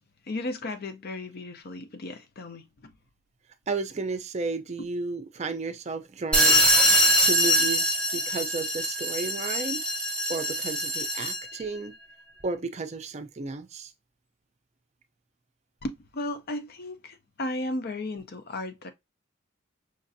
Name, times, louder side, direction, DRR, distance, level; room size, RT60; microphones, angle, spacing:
voice 1, 0.3-3.0 15.8-18.9, left 1 dB, 50° left, 0.6 m, -35 dB
voice 2, 3.7-6.7 7.2-9.8 10.3-11.9 12.4-13.9, right 3 dB, 35° right, 0.4 m, -33 dB
sound 1, 6.3-11.5, equal, 5° left, 0.8 m, -23 dB
5.1 x 2.5 x 2.6 m
head